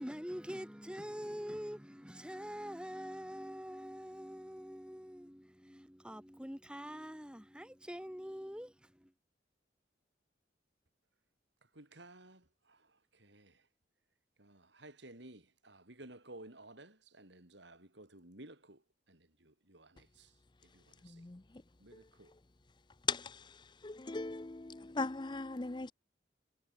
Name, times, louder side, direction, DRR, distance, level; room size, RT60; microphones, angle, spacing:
voice 1, 0.0-9.1, equal, 5° right, 2.3 m, -45 dB
voice 2, 11.8-12.8 13.2-13.5 14.4-18.8 19.1-20.3 20.7-21.2 21.8-22.3, right 1 dB, 70° right, 5.4 m, -55 dB
voice 3, 23.8-25.9, left 4 dB, 25° left, 0.5 m, -37 dB
head